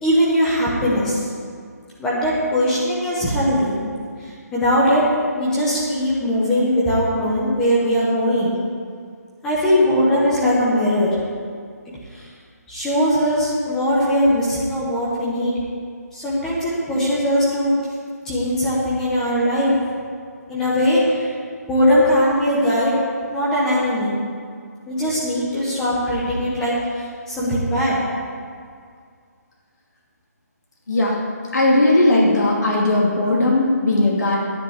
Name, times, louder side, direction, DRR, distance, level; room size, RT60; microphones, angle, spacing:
voice 1, 0.0-1.3 2.0-3.8 4.2-5.0 5.4-8.5 9.4-11.1 12.1-12.3 12.7-15.5 16.1-17.7 18.2-19.8 20.5-21.3 21.7-23.0 23.3-24.2 24.9-28.0, equal, 5° left, -8 dB, 0.8 m, -20 dB
voice 2, 31.5-34.4, left 2 dB, 85° left, -4 dB, 2.7 m, -17 dB
9.8 x 6.0 x 8.0 m, 2.2 s
hypercardioid pair, 180°, 9 cm